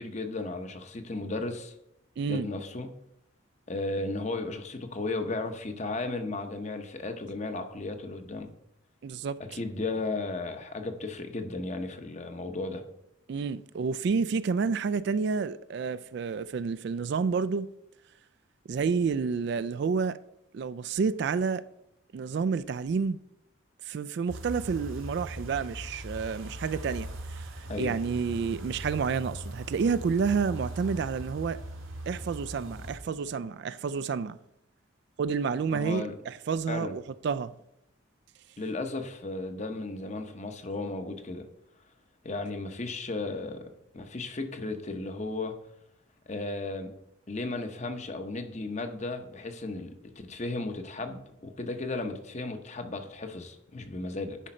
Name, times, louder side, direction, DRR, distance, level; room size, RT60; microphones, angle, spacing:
voice 1, 0.0-1.7 2.2-2.9 3.7-8.5 9.5-12.8 27.7-28.0 35.7-36.2 36.7-36.9 38.6-41.5 42.2-45.5 46.3-46.9 47.3-54.4, left 2 dB, 35° left, 0.8 m, -35 dB
voice 2, 2.2-2.5 9.0-9.4 13.3-17.7 18.7-20.2 20.5-21.6 22.1-23.2 23.8-27.5 27.8-31.6 32.1-34.4 35.2-37.6, right 5 dB, 55° right, 0.3 m, -29 dB
sound 1, 24.3-33.0, right 1 dB, 80° right, 1.6 m, -40 dB
10.0 x 5.1 x 4.3 m
head